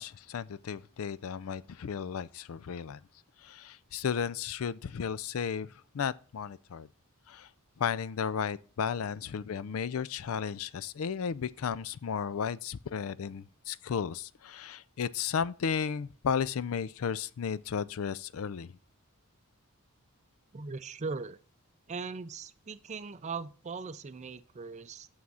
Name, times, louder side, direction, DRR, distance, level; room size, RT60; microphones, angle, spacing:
voice 1, 0.0-3.0 3.4-6.9 7.3-7.5 7.8-18.7, left 7 dB, 70° left, 0.4 m, -34 dB
voice 2, 20.5-21.4 21.9-25.1, right 4 dB, 30° right, 0.4 m, -39 dB
6.3 x 6.0 x 5.5 m
head